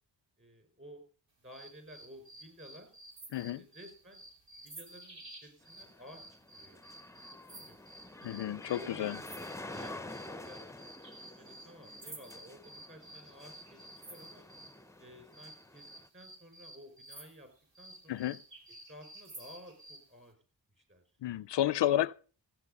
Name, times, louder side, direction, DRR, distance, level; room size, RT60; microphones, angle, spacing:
voice 1, 0.4-1.0 1.4-2.9 3.4-4.2 4.6-6.2 6.5-7.2 7.5-7.8 8.2-8.4 8.7-10.9 11.4-14.5 15.0-15.9 16.1-17.5 17.8-18.3 18.9-20.4 20.8-21.0 21.3-21.4, equal, 25° right, 5.7 m, -54 dB
sound 1, 1.5-14.8 15.3-20.1, right 2 dB, 85° right, 3.1 m, -52 dB
voice 2, 3.3-3.6 8.2-9.2 18.1-18.4 21.2-22.1, left 12 dB, 75° left, 0.5 m, -31 dB
sound 2, 5.6-16.1, left 2 dB, 5° left, 0.6 m, -49 dB
15.5 x 8.9 x 5.3 m
wide cardioid pair, 80°, 43 cm